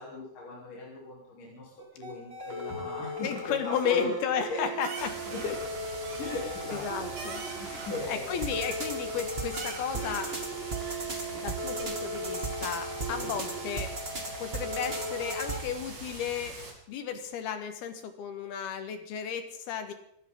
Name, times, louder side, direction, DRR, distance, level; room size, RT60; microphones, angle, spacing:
voice 1, 0.0-4.1 4.5-4.6 5.0-5.4 6.2-7.1 7.4-8.4 13.1-13.3, left 2 dB, 60° left, -5 dB, 5.4 m, -39 dB
sound 1, 1.8-15.6, right 1 dB, 25° right, 1.5 m, -36 dB
voice 2, 3.2-5.2 5.4-5.6 6.7-7.8 8.1-10.3 11.1-13.9 14.4-16.6 16.9-19.9, left 8 dB, 85° left, 8 dB, 3.6 m, -34 dB
sound 2, 3.2-3.4 3.8-4.2 4.8-5.7 6.0-8.1 8.5-9.2 9.5-10.4 10.7-11.4 11.8-11.9, right 3 dB, 75° right, 6.5 m, -44 dB
sound 3, 5.0-16.7, right 3 dB, 50° right, 5.3 m, -44 dB
25.5 x 14.0 x 3.9 m, 0.73 s
omnidirectional pair, 4.3 m